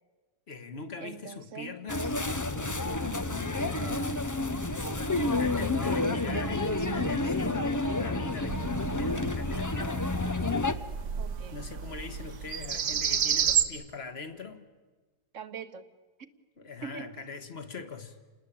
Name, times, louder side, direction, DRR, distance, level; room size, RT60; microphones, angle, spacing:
voice 1, 0.5-2.2 5.2-10.1 11.5-14.7 16.6-18.2, left 4 dB, 40° left, 9 dB, 1.8 m, -42 dB
voice 2, 1.0-1.8 3.7-4.1 11.2-11.6 15.3-15.9 16.8-17.1, right 7 dB, 50° right, 12 dB, 1.4 m, -43 dB
sound 1, 1.9-10.7, left 2 dB, 20° left, 0.5 m, -29 dB
sound 2, 8.5-13.6, right 7 dB, 70° right, 1.7 m, -31 dB
29.0 x 20.0 x 8.6 m, 1.3 s
omnidirectional pair, 1.7 m